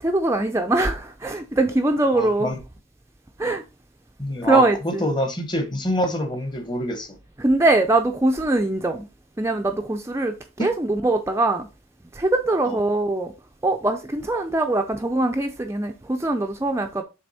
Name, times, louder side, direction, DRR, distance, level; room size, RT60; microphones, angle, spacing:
voice 1, 0.0-2.5 3.4-3.6 4.4-5.0 7.4-9.1 9.4-11.7 12.1-13.3 13.6-17.0, right 2 dB, 15° right, 0.5 m, -22 dB
voice 2, 2.1-2.6 4.2-7.2 10.6-10.7 12.7-12.8, left 1 dB, 20° left, 1.1 m, -26 dB
6.9 x 3.4 x 4.2 m
head